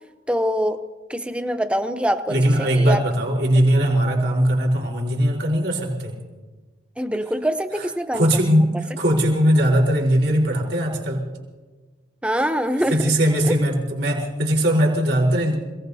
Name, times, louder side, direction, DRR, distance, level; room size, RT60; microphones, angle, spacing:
voice 1, 0.3-0.8 1.1-3.0 7.0-8.3 12.2-13.1 13.5-13.6, equal, 5° right, 8 dB, 0.7 m, -24 dB
voice 2, 2.3-6.2 8.1-11.2 12.9-15.6, equal, 85° right, -2 dB, 4.2 m, -20 dB
27.5 x 18.0 x 2.8 m, 1.4 s
head